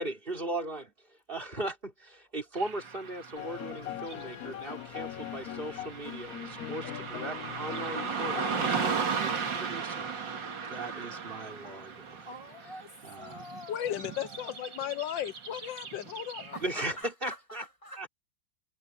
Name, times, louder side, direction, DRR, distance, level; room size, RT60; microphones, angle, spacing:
voice 1, 0.0-10.1 10.7-12.3 13.0-13.4 16.6-17.6 18.0-18.1, right 1 dB, 30° right, 3.6 m, -38 dB
Car passing by / Traffic noise roadway noise, 2.6-16.8, right 5 dB, 75° right, 2.8 m, -37 dB
sound 1, 3.3-8.9, left 12 dB, 65° left, 1.0 m, -41 dB
voice 2, 12.3-14.9 16.5-18.1, left 1 dB, 15° left, 2.3 m, -46 dB
voice 3, 13.7-16.6, left 11 dB, 80° left, 1.6 m, -35 dB
omnidirectional pair, 2.0 m